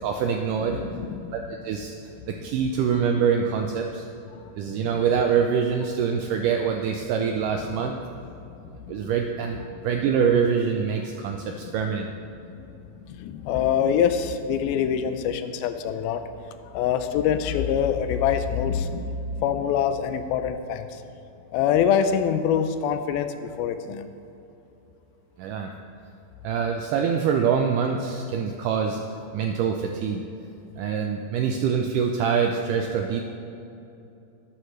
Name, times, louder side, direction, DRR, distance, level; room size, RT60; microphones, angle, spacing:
voice 1, 0.0-0.8 1.3-1.9 2.3-4.1 4.6-8.0 8.9-12.1 25.4-25.7 26.4-29.0 29.3-30.2 30.8-33.2, right 6 dB, 90° right, 3 dB, 1.9 m, -25 dB
voice 2, 0.8-1.3 4.4-4.5 7.8-7.9 9.0-9.1 11.7-11.8 13.0-16.2 16.7-21.0 21.5-24.1, left 8 dB, 85° left, 9 dB, 2.4 m, -25 dB
12.5 x 11.5 x 3.2 m, 2.8 s
omnidirectional pair, 4.3 m